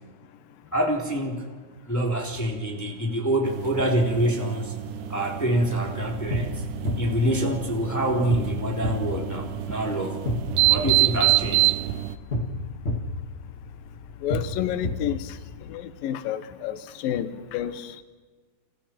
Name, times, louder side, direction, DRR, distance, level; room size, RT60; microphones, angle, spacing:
voice 1, 0.7-1.5 1.9-4.7 5.1-6.6 7.0-10.3 10.7-11.7, right 1 dB, 5° left, -1 dB, 2.3 m, -26 dB
sound 1, 3.4-12.2, right 18 dB, 70° right, 2.1 m, -27 dB
sound 2, 5.9-15.7, left 1 dB, 40° left, 0.9 m, -32 dB
voice 2, 14.2-15.4 15.7-18.0, left 11 dB, 70° left, 10 dB, 2.7 m, -30 dB
29.5 x 28.0 x 4.4 m, 1.4 s
omnidirectional pair, 4.6 m